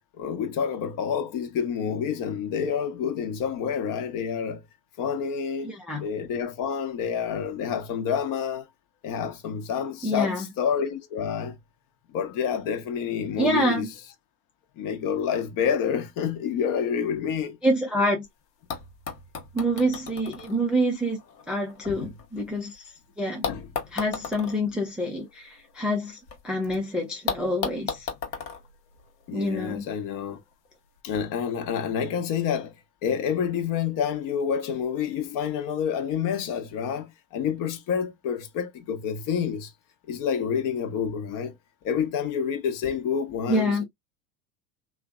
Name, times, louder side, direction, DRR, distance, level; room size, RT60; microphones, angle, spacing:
voice 1, 0.2-4.6 5.0-8.7 9.0-11.6 12.1-13.9 14.8-17.6 21.8-22.1 23.5-23.7 29.3-30.4 31.0-32.7 33.0-39.7 40.1-41.6 41.8-43.8, left 7 dB, 45° left, 0.8 m, -28 dB
voice 2, 5.6-6.1 10.0-10.5 13.4-13.9 17.6-18.3 19.5-21.2 21.5-23.5 23.9-28.1 29.3-29.8 43.5-43.8, equal, ahead, 0.4 m, -27 dB
sound 1, 18.2-18.3 18.7-22.8 23.4-26.4 26.7-26.8 27.3-29.7 30.6-30.7, left 6 dB, 85° left, 1.1 m, -36 dB
3.2 x 2.1 x 2.3 m
hypercardioid pair, 90°, 47 cm